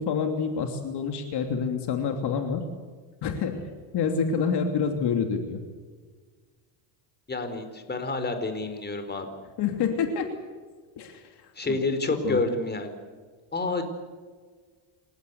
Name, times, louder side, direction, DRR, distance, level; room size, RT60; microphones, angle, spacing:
voice 1, 0.0-2.6 3.2-3.7 3.9-5.6 9.6-10.3 11.0-11.2 11.7-11.8 12.2-12.4, left 6 dB, 55° left, 5 dB, 3.1 m, -27 dB
voice 2, 7.3-9.3 11.6-12.9 13.5-13.8, left 3 dB, 20° left, 8 dB, 4.3 m, -28 dB
28.5 x 16.5 x 8.4 m, 1.5 s
supercardioid pair, 110°, 49 cm